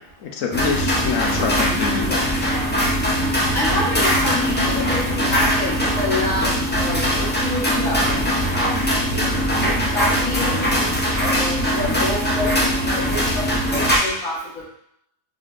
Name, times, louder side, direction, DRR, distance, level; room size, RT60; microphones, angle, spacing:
voice 1, 0.2-2.3, left 6 dB, 75° left, 2 dB, 1.0 m, -26 dB
sound 1, 0.5-14.0, equal, 15° left, 0.3 m, -21 dB
voice 2, 3.5-8.1 9.1-9.4 9.9-10.8 11.2-13.5 13.7-14.6, left 2 dB, 90° left, -6 dB, 1.6 m, -27 dB
4.0 x 3.3 x 2.5 m, 0.75 s
omnidirectional pair, 1.4 m